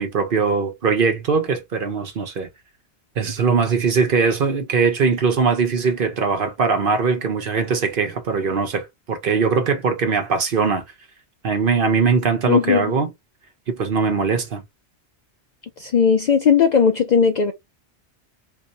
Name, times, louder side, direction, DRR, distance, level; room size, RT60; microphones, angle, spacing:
voice 1, 0.0-2.5 3.2-10.8 11.4-13.1 13.7-14.6, right 5 dB, 55° right, 0.9 m, -21 dB
voice 2, 12.5-12.9 15.8-17.5, left 6 dB, 60° left, 0.5 m, -17 dB
2.7 x 2.6 x 3.9 m
omnidirectional pair, 1.1 m